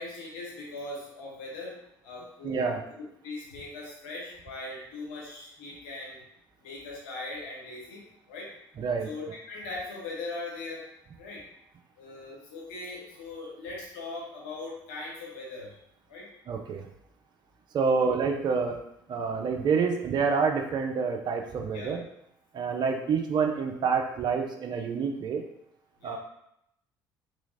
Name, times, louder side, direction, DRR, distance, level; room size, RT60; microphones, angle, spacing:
voice 1, 0.0-1.7 2.0-6.2 6.6-8.0 8.3-8.5 9.0-10.8 11.2-11.4 12.0-15.8 16.1-16.3 21.7-21.9 26.0-26.2, left 2 dB, 75° left, -4 dB, 1.0 m, -40 dB
voice 2, 2.4-2.8 8.8-9.1 16.5-16.9 17.7-18.8 19.1-22.0 22.5-25.4 26.0-26.2, right 5 dB, 45° right, 3 dB, 0.5 m, -27 dB
3.3 x 3.1 x 2.6 m, 0.78 s
hypercardioid pair, 60°, 10 cm